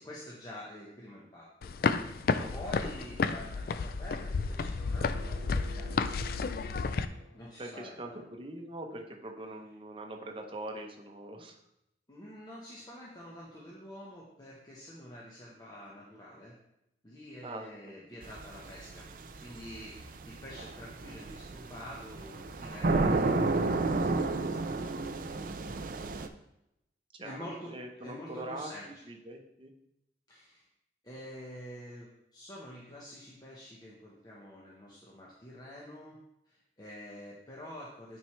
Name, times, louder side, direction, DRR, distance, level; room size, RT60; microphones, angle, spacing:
voice 1, 0.0-5.9 7.3-7.9 12.1-16.6 17.0-19.1 19.4-24.9 25.2-25.7 27.2-29.0 30.3-30.7 31.0-36.2 36.5-38.2, left 1 dB, 25° left, -5 dB, 1.0 m, -47 dB
sound 1, 1.6-7.0, left 4 dB, 55° left, 0.3 m, -31 dB
voice 2, 2.3-2.9 7.6-11.6 17.4-18.4 27.1-28.7 29.1-29.7, right 1 dB, 30° right, 2 dB, 0.8 m, -43 dB
sound 2, 4.7-7.7, equal, 85° left, 1.4 m, -47 dB
sound 3, 18.2-26.3, right 3 dB, 50° right, 0.4 m, -32 dB
9.3 x 4.5 x 3.2 m, 0.83 s
head